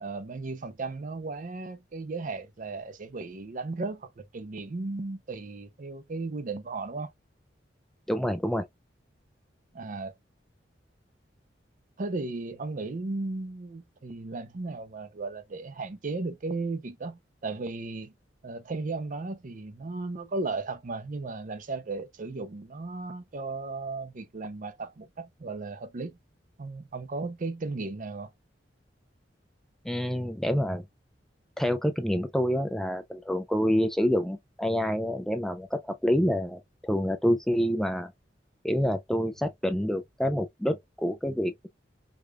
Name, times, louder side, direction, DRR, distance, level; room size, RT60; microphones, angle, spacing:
voice 1, 0.0-7.1 9.7-10.1 12.0-18.1 18.4-26.2 26.6-28.3, right 3 dB, 45° right, 0.5 m, -35 dB
voice 2, 8.1-8.7 29.9-30.8 31.6-38.1 38.6-41.7, equal, ahead, 0.3 m, -27 dB
4.9 x 2.3 x 2.3 m
head